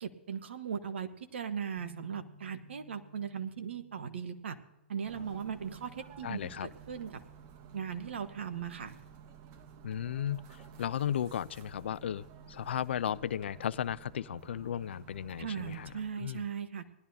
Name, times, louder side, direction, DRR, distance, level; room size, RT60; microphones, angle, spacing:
voice 1, 0.0-4.6 4.9-7.2 7.7-8.9 15.4-16.9, right 7 dB, 70° right, 9 dB, 1.3 m, -38 dB
sound 1, 1.8-5.8, left 2 dB, 20° left, 2.5 m, -58 dB
sound 2, 5.0-16.1, right 7 dB, 40° right, 1.4 m, -53 dB
voice 2, 6.2-6.7 9.8-16.4, left 9 dB, 70° left, 18 dB, 0.5 m, -35 dB
20.0 x 12.0 x 2.8 m, 0.94 s
hypercardioid pair, 120°, 6 cm